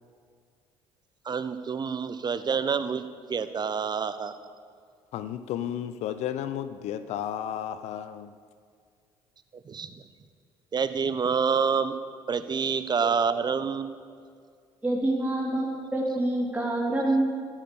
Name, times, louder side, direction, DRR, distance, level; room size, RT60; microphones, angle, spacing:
voice 1, 1.2-4.3 9.6-10.0 10.7-12.0 12.3-13.9, right 6 dB, 35° right, 12 dB, 1.2 m, -27 dB
voice 2, 5.1-8.3, left 10 dB, 65° left, 12 dB, 0.7 m, -33 dB
voice 3, 14.8-15.7 15.9-17.2, right 1 dB, 10° right, -3 dB, 3.2 m, -26 dB
14.0 x 12.5 x 6.9 m, 2.2 s
hypercardioid pair, 65°, 12 cm